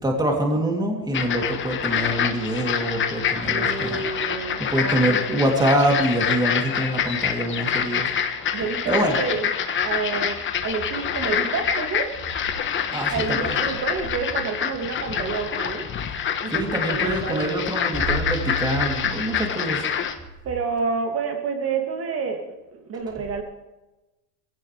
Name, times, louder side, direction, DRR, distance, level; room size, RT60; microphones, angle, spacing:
voice 1, 0.0-4.0 4.7-8.1 8.9-9.2 12.9-13.5 16.5-19.9, right 1 dB, 10° right, 1 dB, 3.1 m, -24 dB
sound 1, 1.1-20.1, left 8 dB, 25° left, 1.4 m, -26 dB
voice 2, 3.4-5.4 8.5-12.1 13.1-15.9 16.4-17.6 20.4-22.4 22.7-23.4, right 5 dB, 30° right, 4 dB, 2.5 m, -29 dB
22.0 x 17.0 x 3.4 m, 1.1 s
supercardioid pair, 130°, 49 cm